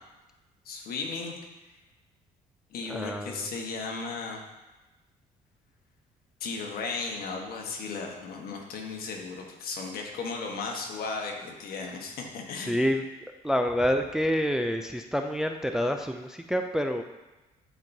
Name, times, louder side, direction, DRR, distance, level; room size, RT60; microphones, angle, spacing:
voice 1, 0.6-1.3 2.7-4.4 6.4-12.8, left 4 dB, 60° left, 1 dB, 1.3 m, -35 dB
voice 2, 2.9-3.5 12.7-17.0, equal, 5° right, 5 dB, 0.3 m, -28 dB
11.0 x 4.6 x 2.7 m, 1.1 s
cardioid pair, 110°, 17 cm